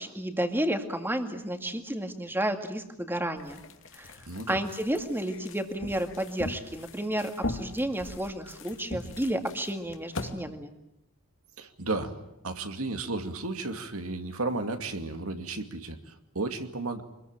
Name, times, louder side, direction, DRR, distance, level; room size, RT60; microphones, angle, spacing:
voice 1, 0.0-3.6 3.9-4.2 4.5-10.7, right 1 dB, 10° right, 6 dB, 2.2 m, -31 dB
sound 1, 3.4-10.3, left 2 dB, 60° left, 2.6 m, -40 dB
voice 2, 4.3-4.6 11.6-17.0, right 2 dB, 70° right, 6 dB, 2.4 m, -33 dB
26.0 x 21.5 x 9.0 m, 0.86 s
head